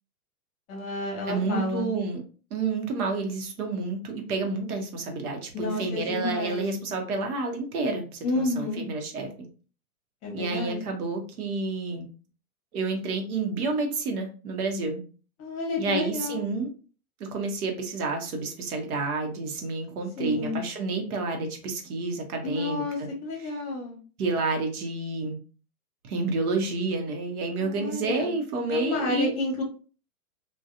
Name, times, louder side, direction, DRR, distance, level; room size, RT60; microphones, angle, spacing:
voice 1, 0.7-1.9 5.5-6.6 8.2-8.8 10.2-10.8 15.4-16.4 20.2-20.6 22.4-24.0 27.6-28.3 28.7-29.6, left 2 dB, 30° left, -1 dB, 1.0 m, -30 dB
voice 2, 1.3-2.2 2.5-9.3 10.3-12.1 12.7-15.0 15.8-16.7 17.3-23.1 23.4-23.5 24.2-25.4 26.0-29.3, right 3 dB, 70° right, 3 dB, 1.0 m, -29 dB
2.7 x 2.4 x 2.4 m, 0.38 s
hypercardioid pair, 135°, 45 cm